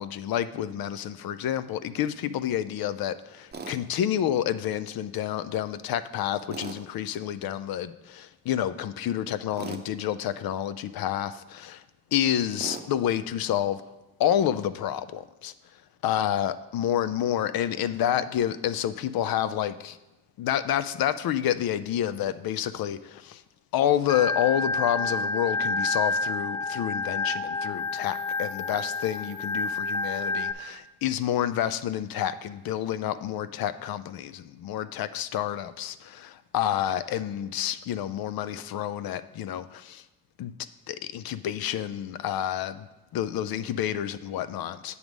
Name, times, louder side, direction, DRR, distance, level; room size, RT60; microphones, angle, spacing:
voice 1, 0.0-11.8 12.1-13.8 14.2-15.5 16.0-20.0 20.4-23.4 23.7-40.0 40.4-40.5 40.9-42.9 43.1-45.0, left 10 dB, 75° left, 0.5 m, -29 dB
Tools, 3.5-3.8 6.5-6.8 9.6-9.9 12.6-12.9, right 4 dB, 30° right, 0.7 m, -37 dB
Organ, 24.1-30.5, left 3 dB, 15° left, 0.4 m, -29 dB
7.9 x 3.5 x 6.1 m
cardioid pair, 95°, 36 cm